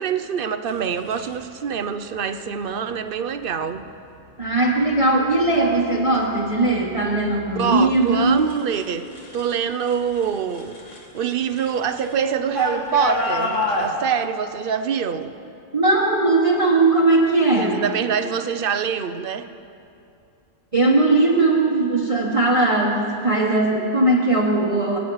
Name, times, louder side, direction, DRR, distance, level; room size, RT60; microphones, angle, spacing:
voice 1, 0.0-3.8 7.5-9.1 9.3-10.7 11.1-15.3 17.6-19.5, right 7 dB, 55° right, 10 dB, 0.7 m, -25 dB
sound 1, 0.7-1.4 2.5-2.8 3.4-3.8 4.4-4.9 5.3-9.6 9.8-13.9, left 2 dB, 70° left, 2.0 m, -31 dB
voice 2, 4.4-8.4 15.7-17.9 20.7-25.0, right 2 dB, 25° right, -2 dB, 1.1 m, -19 dB
23.5 x 9.4 x 4.8 m, 2.6 s
omnidirectional pair, 1.3 m